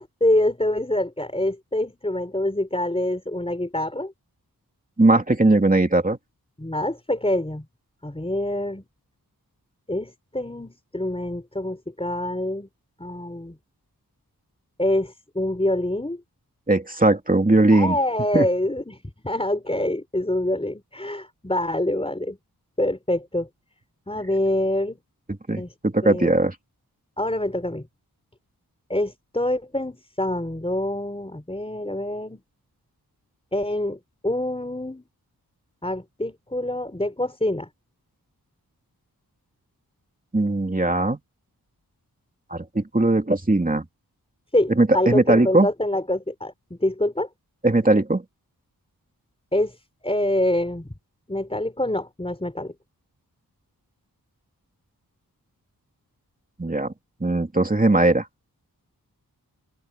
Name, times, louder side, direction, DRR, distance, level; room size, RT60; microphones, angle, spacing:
voice 1, 0.0-4.1 6.6-7.7 8.0-8.8 9.9-12.7 13.0-13.6 14.8-16.2 17.7-22.4 22.8-23.5 24.1-25.0 25.6-25.7 26.0-26.3 27.2-27.9 28.9-32.4 33.5-35.0 35.8-37.7 44.5-47.3 49.5-49.8 50.0-50.9 51.3-52.7, left 1 dB, 15° left, 4.2 m, -26 dB
voice 2, 5.0-6.2 16.7-18.0 18.3-18.5 25.5-26.5 40.3-41.2 42.5-43.8 44.8-45.7 47.6-48.2 56.6-56.9 57.2-58.3, right 2 dB, 20° right, 2.6 m, -19 dB
wide cardioid pair, 90°, 37 cm